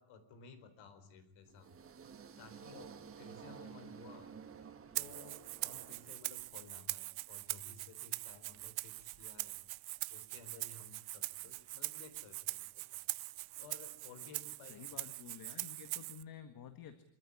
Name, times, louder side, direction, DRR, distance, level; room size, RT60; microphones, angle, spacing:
voice 1, 0.0-1.7 2.4-4.3 4.6-9.6 10.1-13.0 13.6-15.2, left 5 dB, 65° left, 10 dB, 4.2 m, -57 dB
sound 1, 1.5-6.6, right 7 dB, 25° right, 1.4 m, -53 dB
Rattle (instrument), 4.9-16.2, right 21 dB, 70° right, 0.8 m, -43 dB
voice 2, 14.7-17.0, left 8 dB, 45° left, 9 dB, 1.8 m, -51 dB
26.5 x 14.0 x 9.9 m, 0.79 s
cardioid pair, 165°, 50 cm